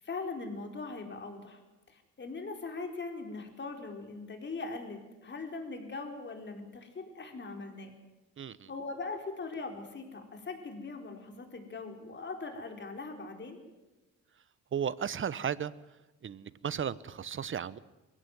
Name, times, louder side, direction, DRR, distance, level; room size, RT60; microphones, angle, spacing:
voice 1, 0.0-1.6 1.9-7.9 8.7-13.6, left 3 dB, 35° left, 4 dB, 4.5 m, -41 dB
voice 2, 8.4-8.7 14.7-15.7 16.2-17.8, right 8 dB, 40° right, 18 dB, 1.0 m, -34 dB
22.0 x 16.5 x 9.5 m, 1.1 s
cardioid pair, 90°, 30 cm